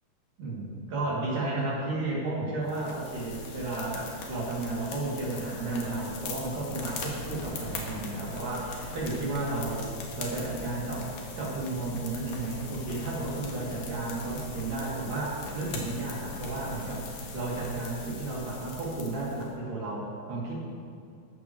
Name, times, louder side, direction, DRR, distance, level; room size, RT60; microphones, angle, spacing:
voice 1, 0.4-9.9 10.2-20.5, right 2 dB, 80° right, -6 dB, 4.7 m, -33 dB
sound 1, 2.7-19.5, left 3 dB, 80° left, 3.2 m, -40 dB
15.5 x 12.5 x 3.3 m, 2.4 s
omnidirectional pair, 3.7 m